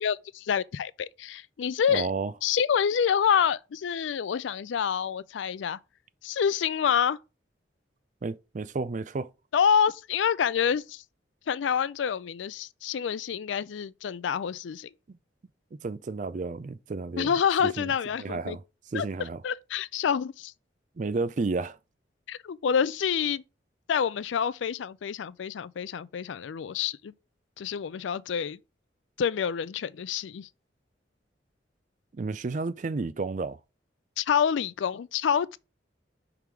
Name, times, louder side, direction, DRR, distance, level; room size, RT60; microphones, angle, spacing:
voice 1, 0.0-2.1 2.4-5.8 6.2-7.2 9.5-11.0 11.5-14.9 17.2-18.6 18.9-20.5 22.3-23.4 23.9-27.1 27.6-28.6 29.2-30.5 34.2-35.6, left 7 dB, 80° left, 0.4 m, -27 dB
voice 2, 1.9-2.3 8.2-9.3 15.1-15.2 15.8-17.3 17.8-17.9 18.2-18.6 18.9-19.4 21.0-21.8 32.1-33.6, right 3 dB, 40° right, 0.4 m, -31 dB
5.9 x 3.5 x 4.7 m
head